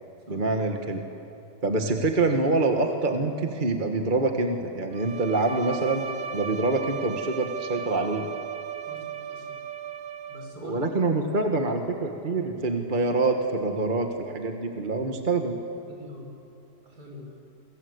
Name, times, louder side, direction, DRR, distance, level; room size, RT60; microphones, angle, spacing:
voice 1, 0.3-1.0 1.6-6.0 6.3-8.3 10.6-15.5, right 3 dB, 30° right, 4 dB, 1.6 m, -26 dB
Bowed string instrument, 4.9-10.7, right 8 dB, 85° right, 2.2 m, -36 dB
voice 2, 8.8-9.6 10.3-10.9 15.9-16.3 16.8-17.3, left 1 dB, 65° right, 0 dB, 6.6 m, -44 dB
29.5 x 23.5 x 8.1 m, 2.7 s
omnidirectional pair, 1.9 m